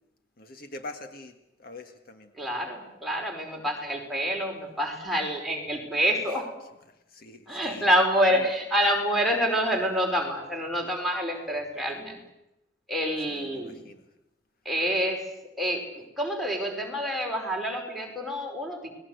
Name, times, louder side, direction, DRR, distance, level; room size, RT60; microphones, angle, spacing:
voice 1, 0.4-2.3 7.1-7.9 8.3-8.5 9.7-9.9 13.3-14.0, left 2 dB, 55° left, 6 dB, 1.7 m, -44 dB
voice 2, 2.4-6.5 7.5-12.2 12.9-13.8 14.7-15.2 15.6-18.9, equal, ahead, 2 dB, 5.3 m, -27 dB
29.5 x 20.0 x 8.1 m, 0.89 s
head